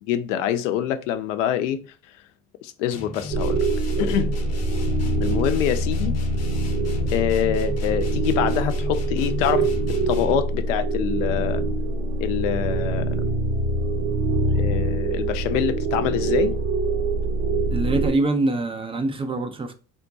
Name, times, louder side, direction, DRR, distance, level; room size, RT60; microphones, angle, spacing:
voice 1, 0.0-1.8 2.6-3.6 4.0-4.3 5.2-6.2 7.1-11.6 12.2-13.1 14.5-16.5, left 10 dB, 70° left, 0.6 m, -25 dB
sound 1, 2.9-10.6, left 4 dB, 40° left, 0.9 m, -36 dB
sound 2, 3.3-18.1, right 2 dB, 45° right, 0.9 m, -24 dB
voice 2, 17.7-19.7, right 2 dB, 15° right, 0.5 m, -24 dB
3.6 x 2.2 x 2.6 m
hypercardioid pair, 65°, 39 cm